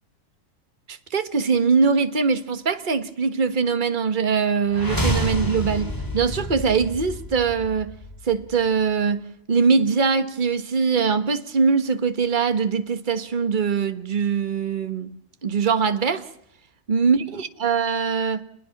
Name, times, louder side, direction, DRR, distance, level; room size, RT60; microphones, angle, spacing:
voice 1, 0.9-7.9 8.3-15.1 15.4-16.3 16.9-18.4, right 5 dB, 35° right, 1.5 m, -22 dB
sound 1, 4.7-8.7, equal, 15° left, 3.0 m, -29 dB
28.0 x 21.5 x 6.0 m
omnidirectional pair, 1.4 m